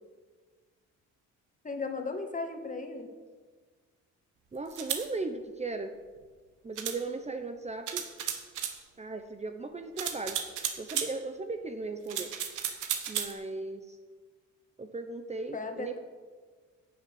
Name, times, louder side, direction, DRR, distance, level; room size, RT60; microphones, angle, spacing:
voice 1, 1.6-3.1 15.5-16.0, left 3 dB, 25° left, 5 dB, 1.7 m, -36 dB
voice 2, 4.5-5.9 6.6-8.0 9.0-10.4 10.8-12.3 13.1-14.0 14.8-16.0, right 3 dB, 20° right, 7 dB, 0.8 m, -37 dB
sound 1, 4.7-5.0 6.8-7.0 7.9-8.8 10.0-11.1 12.1-13.3, right 9 dB, 85° right, 1.4 m, -34 dB
9.9 x 7.4 x 8.0 m, 1.5 s
cardioid pair, 90°, 30 cm